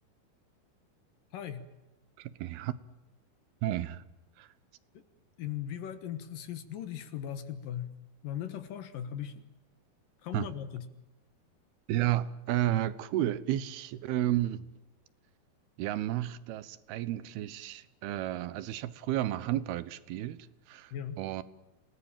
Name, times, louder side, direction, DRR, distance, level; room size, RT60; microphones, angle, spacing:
voice 1, 1.3-1.7 4.9-5.0 5.4-7.9 8.2-9.4 10.2-10.9 20.9-21.2, left 10 dB, 65° left, 2.8 m, -38 dB
voice 2, 2.2-2.7 3.6-4.0 4.4-4.5 10.3-10.5 11.9-14.7 15.8-21.4, right 14 dB, 80° right, 2.9 m, -32 dB
28.0 x 19.0 x 9.0 m
omnidirectional pair, 4.5 m